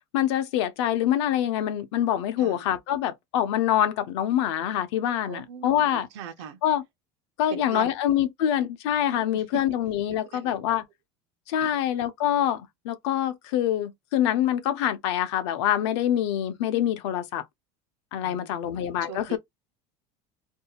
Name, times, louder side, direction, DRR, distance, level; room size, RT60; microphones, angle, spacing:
voice 1, 0.1-6.1 6.6-6.8 7.4-10.8 11.5-17.4 18.1-19.4, left 11 dB, 85° left, 0.7 m, -25 dB
voice 2, 5.3-6.6 7.5-8.0 9.1-9.4 10.3-10.6 11.6-11.7 18.2-19.4, right 8 dB, 80° right, 0.7 m, -41 dB
2.6 x 2.3 x 2.8 m
cardioid pair, 170°, 14 cm